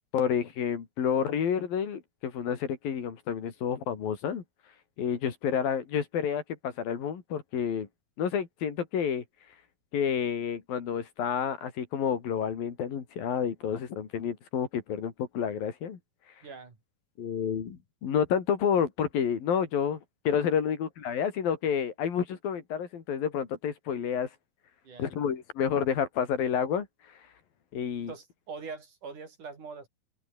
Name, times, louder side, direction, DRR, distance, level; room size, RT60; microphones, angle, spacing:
voice 1, 0.1-4.4 5.0-7.9 8.2-9.2 9.9-16.0 17.2-24.3 25.0-26.9 27.7-28.1, left 7 dB, 75° left, 4.6 m, -29 dB
voice 2, 16.4-16.8 24.8-25.1 28.1-29.9, right 4 dB, 60° right, 6.3 m, -43 dB
open air
omnidirectional pair, 4.2 m